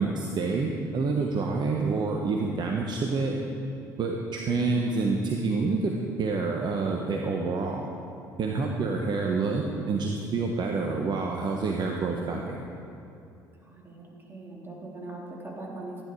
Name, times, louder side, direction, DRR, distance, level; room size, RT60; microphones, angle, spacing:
voice 1, 0.0-3.4 4.0-7.9 8.4-12.6, right 4 dB, 45° right, 1 dB, 1.3 m, -28 dB
voice 2, 13.6-16.0, right 2 dB, 20° right, -3 dB, 3.8 m, -41 dB
15.5 x 10.5 x 4.8 m, 2.7 s
hypercardioid pair, 60°, 10 cm